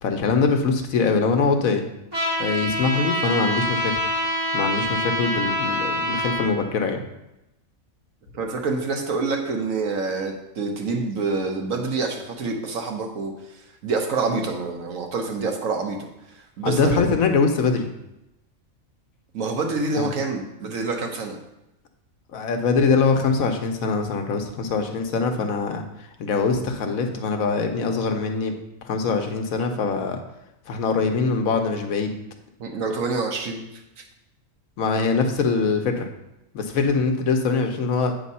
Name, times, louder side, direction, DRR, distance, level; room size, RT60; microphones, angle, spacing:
voice 1, 0.0-1.9 2.4-4.1 4.5-7.0 16.6-17.9 20.0-20.1 22.3-28.5 28.8-30.2 30.7-32.1 34.8-36.1 36.5-38.1, left 4 dB, 85° left, 5 dB, 1.2 m, -23 dB
Trumpet, 2.1-6.4, equal, 15° right, 2.8 m, -25 dB
voice 2, 8.3-13.3 13.8-16.0 16.3-17.0 19.3-21.4 32.6-33.6 34.0-34.1, right 3 dB, 75° right, 3 dB, 1.3 m, -27 dB
8.4 x 3.6 x 5.4 m, 0.90 s
omnidirectional pair, 1.4 m